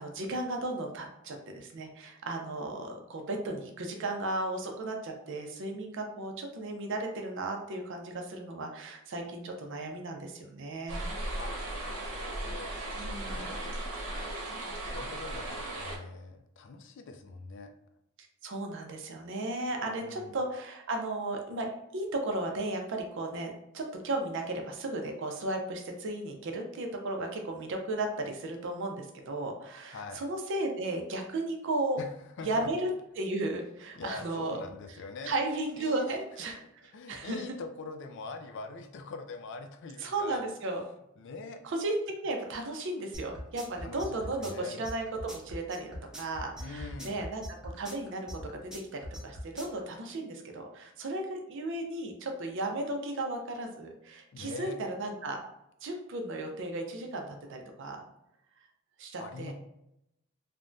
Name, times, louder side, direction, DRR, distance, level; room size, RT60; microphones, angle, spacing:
voice 1, 0.0-11.0 13.0-13.5 18.4-32.0 32.4-32.9 33.2-34.6 35.3-36.6 37.1-37.4 40.0-40.8 41.6-47.4 47.8-48.3 48.6-55.4 55.8-58.0 59.0-59.5, right 2 dB, 60° right, 3 dB, 0.5 m, -35 dB
sound 1, 10.9-16.0, right 1 dB, 80° right, 0.9 m, -36 dB
voice 2, 11.4-12.7 13.2-13.8 14.8-17.7 19.9-20.4 29.9-30.2 32.0-32.1 32.4-32.7 34.0-35.3 35.8-36.2 36.9-40.4 41.2-41.6 43.8-44.8 46.6-47.2 54.3-54.8 59.2-59.5, left 4 dB, 60° left, 6 dB, 0.4 m, -43 dB
sound 2, 43.1-49.8, equal, 5° right, 0.6 m, -41 dB
3.3 x 2.1 x 2.5 m, 0.83 s
head